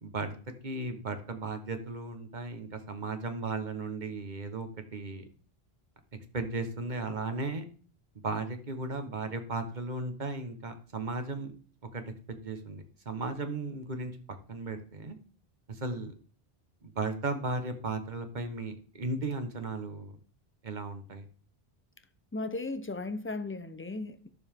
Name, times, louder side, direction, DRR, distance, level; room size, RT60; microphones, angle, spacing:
voice 1, 0.0-5.2 6.3-7.6 8.2-11.5 11.9-14.2 14.5-15.2 15.7-16.1 16.8-20.2 20.6-21.3, right 3 dB, 45° right, 1.3 m, -36 dB
voice 2, 22.3-24.3, left 2 dB, 15° left, 0.6 m, -36 dB
12.0 x 7.0 x 3.6 m
omnidirectional pair, 1.0 m